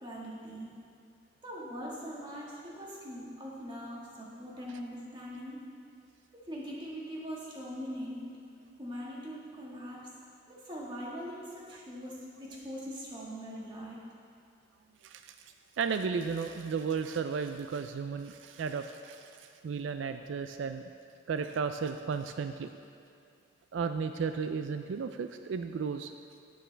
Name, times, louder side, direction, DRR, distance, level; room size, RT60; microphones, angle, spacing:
voice 1, 0.0-0.7 1.4-5.6 6.3-8.4 8.8-10.1 10.5-14.1, equal, 25° right, -4 dB, 1.7 m, -42 dB
voice 2, 15.0-20.9 21.3-22.7 23.7-26.1, right 5 dB, 80° right, 8 dB, 0.4 m, -34 dB
11.5 x 9.2 x 3.3 m, 2.4 s
head